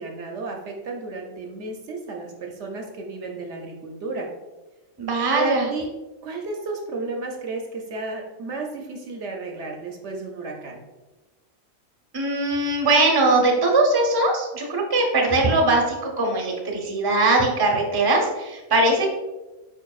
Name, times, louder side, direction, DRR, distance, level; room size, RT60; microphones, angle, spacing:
voice 1, 0.0-4.3 5.3-5.9 6.2-10.8, right 3 dB, 65° right, 1 dB, 0.9 m, -32 dB
voice 2, 5.0-5.7 12.1-19.1, right 2 dB, 20° right, 1 dB, 0.6 m, -20 dB
4.9 x 4.6 x 2.3 m, 1.1 s
omnidirectional pair, 1.4 m